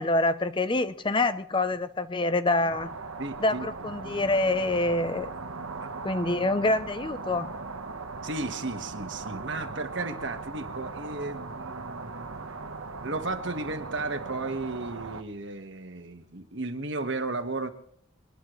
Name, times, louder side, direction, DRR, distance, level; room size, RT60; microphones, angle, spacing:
voice 1, 0.0-2.9 3.4-5.3 6.0-7.5, left 2 dB, 25° left, 12 dB, 0.6 m, -26 dB
sound 1, 2.7-15.2, right 3 dB, 90° right, 1.2 m, -39 dB
voice 2, 3.2-3.7 5.8-5.9 8.2-12.4 13.0-17.7, right 3 dB, 60° right, 7 dB, 1.5 m, -34 dB
22.5 x 19.5 x 3.2 m, 0.66 s
head